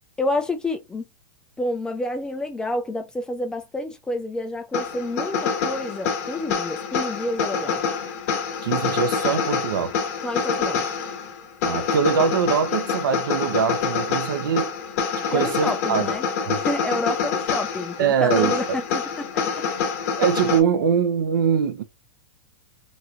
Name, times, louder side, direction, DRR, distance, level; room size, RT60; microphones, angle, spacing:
voice 1, 0.2-1.0 1.6-7.8 10.2-10.9 15.3-16.3 16.5-19.6, left 1 dB, 5° left, 0.3 m, -29 dB
sound 1, 4.7-20.6, left 6 dB, 50° left, 1.0 m, -26 dB
voice 2, 8.6-9.9 11.6-14.7 15.3-16.1 16.4-16.6 18.0-18.6 20.2-21.8, right 7 dB, 80° right, 0.7 m, -22 dB
2.9 x 2.7 x 2.4 m
supercardioid pair, 155°, 11 cm